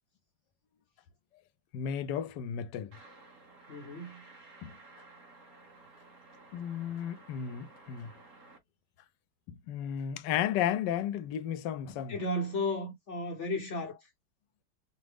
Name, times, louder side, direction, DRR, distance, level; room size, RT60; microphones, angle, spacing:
voice 1, 1.7-2.9 4.6-4.7 6.5-8.1 9.5-12.1, left 9 dB, 85° left, 1.2 m, -33 dB
sound 1, 2.9-8.6, right 3 dB, 50° right, 1.5 m, -55 dB
voice 2, 3.7-4.2 12.1-14.1, left 1 dB, 55° left, 0.9 m, -34 dB
5.0 x 2.0 x 3.4 m
omnidirectional pair, 1.8 m